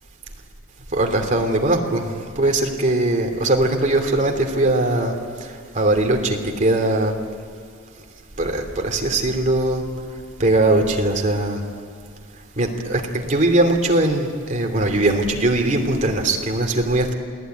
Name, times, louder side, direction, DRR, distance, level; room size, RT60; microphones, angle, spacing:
voice 1, 0.9-5.1 5.4-7.1 8.4-9.8 10.4-11.6 12.5-17.1, right 2 dB, 35° right, 3 dB, 3.0 m, -20 dB
28.5 x 18.5 x 9.5 m, 2.1 s
head